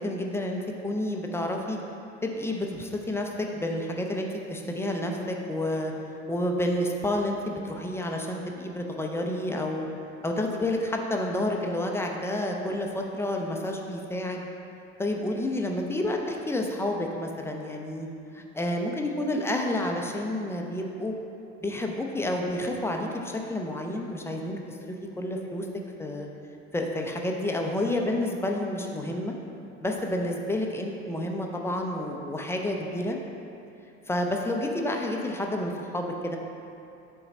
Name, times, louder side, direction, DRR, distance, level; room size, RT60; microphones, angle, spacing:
voice 1, 0.0-1.8 2.2-5.9 6.3-9.9 10.2-14.4 15.0-18.1 18.3-21.1 21.6-25.7 26.0-26.3 26.7-29.3 29.8-33.2 34.1-36.4, left 1 dB, 5° left, 1 dB, 0.4 m, -30 dB
6.7 x 3.9 x 4.2 m, 2.7 s
figure-of-eight pair, 65°, 39 cm